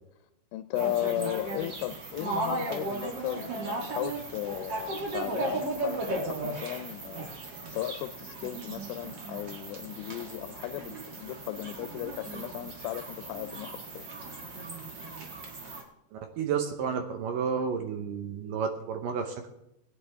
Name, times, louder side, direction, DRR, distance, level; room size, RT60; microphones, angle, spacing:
voice 1, 0.5-14.1, left 15 dB, 85° left, 10 dB, 2.7 m, -36 dB
sound 1, 0.7-15.8, right 2 dB, 55° right, 1.2 m, -36 dB
voice 2, 16.1-19.5, right 6 dB, 75° right, 5 dB, 2.1 m, -31 dB
20.5 x 9.6 x 3.5 m, 0.84 s
omnidirectional pair, 4.8 m